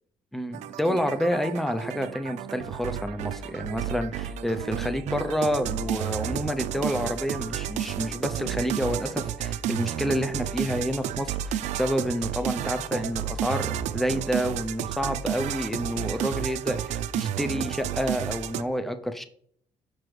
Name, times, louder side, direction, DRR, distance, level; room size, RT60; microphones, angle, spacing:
voice 1, 0.3-19.3, equal, ahead, 9 dB, 0.5 m, -29 dB
sound 1, 0.5-18.6, right 10 dB, 80° right, 0.4 m, -32 dB
6.1 x 6.0 x 3.2 m, 0.62 s
cardioid pair, 130°, 12 cm